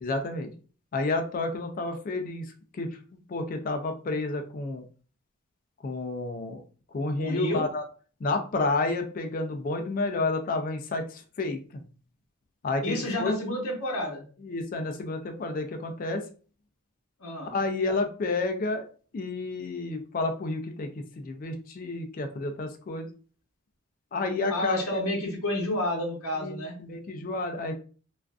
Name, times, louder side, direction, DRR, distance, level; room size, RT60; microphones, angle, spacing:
voice 1, 0.0-0.5 0.9-3.0 3.3-4.8 5.8-6.6 6.9-7.8 8.2-11.8 12.6-13.4 14.4-16.2 17.5-18.9 19.1-23.1 24.1-24.8 26.4-27.8, left 2 dB, 40° left, 6 dB, 0.3 m, -30 dB
voice 2, 7.2-7.7 12.8-14.2 17.2-17.5 24.5-26.8, left 1 dB, 75° left, 0 dB, 0.8 m, -30 dB
2.4 x 2.4 x 2.2 m, 0.40 s
head